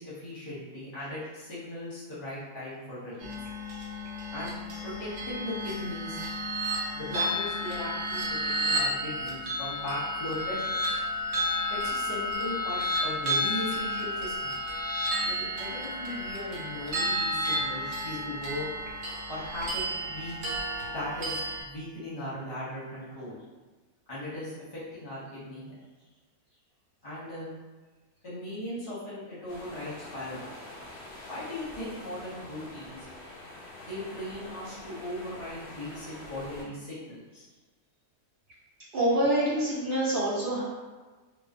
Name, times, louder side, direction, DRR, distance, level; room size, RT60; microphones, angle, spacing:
voice 1, 0.0-3.4 4.3-4.5 4.8-6.2 6.9-10.8 11.7-14.6 15.2-18.7 19.3-20.4 20.9-23.4 24.1-25.7 27.0-27.5 28.2-30.5 31.3-33.1 33.8-37.4, left 1 dB, 45° left, -9 dB, 0.8 m, -38 dB
sound 1, 3.2-21.6, equal, 80° right, 1.1 m, -32 dB
sound 2, 29.5-36.6, left 1 dB, 80° left, 0.5 m, -45 dB
voice 2, 38.9-40.6, right 1 dB, 60° right, -8 dB, 0.6 m, -26 dB
2.4 x 2.2 x 2.4 m, 1.3 s
omnidirectional pair, 1.6 m